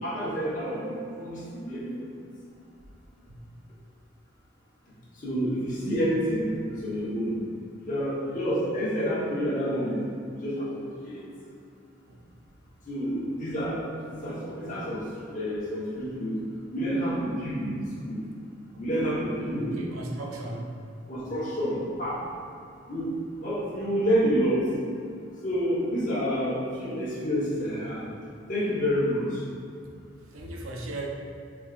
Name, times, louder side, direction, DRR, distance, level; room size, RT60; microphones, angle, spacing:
voice 1, 0.0-1.9 5.2-7.3 7.8-10.0 10.3-11.2 12.9-13.8 14.1-16.4 16.7-17.7 18.0-18.2 18.8-19.8 21.1-22.2 22.9-23.1 23.4-24.7 25.4-28.0 28.5-29.4, equal, 40° left, -8 dB, 1.1 m, -28 dB
voice 2, 19.6-20.8 30.3-31.1, right 2 dB, 85° right, -1 dB, 0.6 m, -38 dB
5.2 x 3.4 x 2.5 m, 2.4 s
head